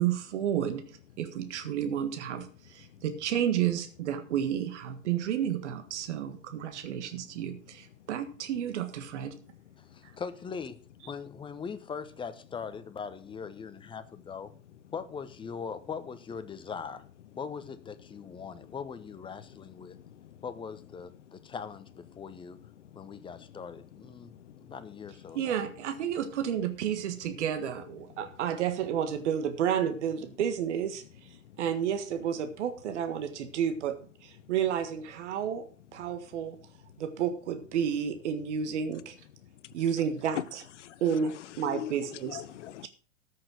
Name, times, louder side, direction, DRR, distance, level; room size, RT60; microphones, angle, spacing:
voice 1, 0.0-9.4 25.3-31.0 31.6-35.6 35.9-36.6 37.0-39.1 39.7-40.6 41.0-42.4, right 9 dB, 60° right, 1.7 m, -31 dB
voice 2, 7.0-7.4 9.9-10.2 18.1-18.8 19.5-20.4 21.4-21.5 22.1-22.2 22.8-24.7 25.3-25.4 28.2-28.3 31.4-31.6 34.4-34.5 39.4-39.8 40.4-40.5 40.8-42.9, left 12 dB, 60° left, 1.0 m, -44 dB
voice 3, 9.8-14.5 14.9-17.0 17.4-20.0 20.4-22.6 23.0-24.3 24.6-25.6, left 6 dB, 10° left, 1.0 m, -41 dB
13.5 x 6.6 x 6.2 m
figure-of-eight pair, 100°, 40 cm